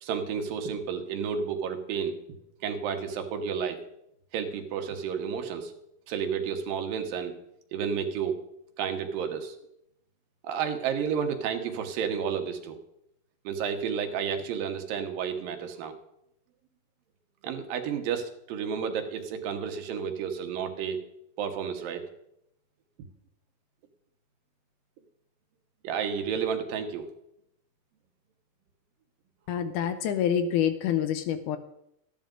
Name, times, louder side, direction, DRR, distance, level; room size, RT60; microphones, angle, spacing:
voice 1, 0.0-2.2 2.6-3.8 4.3-5.7 6.1-7.3 7.7-8.4 8.8-9.5 10.4-12.8 13.4-15.9 17.4-21.0 21.4-22.0 25.8-27.1, right 7 dB, 85° right, 6 dB, 2.8 m, -31 dB
voice 2, 29.5-31.6, left 9 dB, 75° left, 10 dB, 1.9 m, -27 dB
14.0 x 10.0 x 3.8 m, 0.79 s
omnidirectional pair, 3.9 m